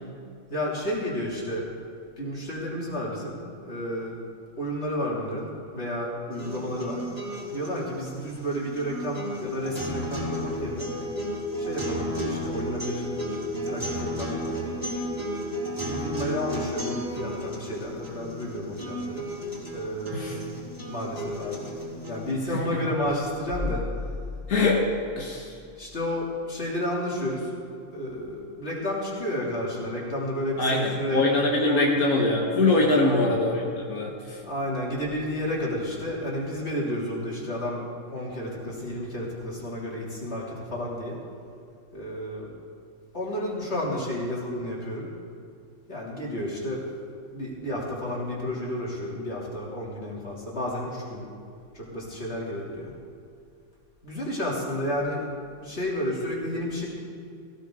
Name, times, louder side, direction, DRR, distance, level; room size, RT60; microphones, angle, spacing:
voice 1, 0.5-1.7 2.2-3.4 3.6-4.2 4.6-7.0 7.5-10.9 11.6-13.1 13.5-14.9 15.8-19.3 19.7-20.5 20.9-21.7 22.1-23.8 25.8-27.5 27.9-31.3 31.7-32.0 33.0-33.4 34.4-41.2 41.9-42.5 43.1-45.1 45.9-46.8 47.3-51.2 51.7-52.9 54.0-56.8, left 1 dB, 45° left, -4 dB, 3.2 m, -31 dB
sound 1, 6.3-22.3, equal, 15° right, 4.1 m, -33 dB
voice 2, 24.5-24.8 25.2-25.6 30.6-34.4, left 2 dB, 80° left, -2 dB, 2.0 m, -23 dB
18.0 x 16.0 x 3.8 m, 2.4 s
omnidirectional pair, 1.5 m